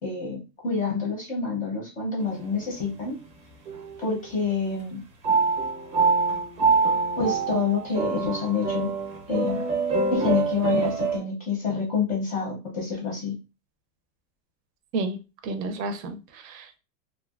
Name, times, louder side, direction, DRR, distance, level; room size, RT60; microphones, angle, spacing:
voice 1, 0.0-3.1 4.0-5.0 7.2-8.9 9.3-9.6 10.1-13.3, left 5 dB, 15° left, -1 dB, 0.5 m, -27 dB
sound 1, 2.2-2.9 3.7-4.3 5.2-11.2, right 4 dB, 25° right, 0.6 m, -25 dB
voice 2, 15.4-16.8, right 3 dB, 75° right, 8 dB, 0.7 m, -31 dB
2.7 x 2.2 x 2.3 m, 0.29 s
supercardioid pair, 150°, 50 cm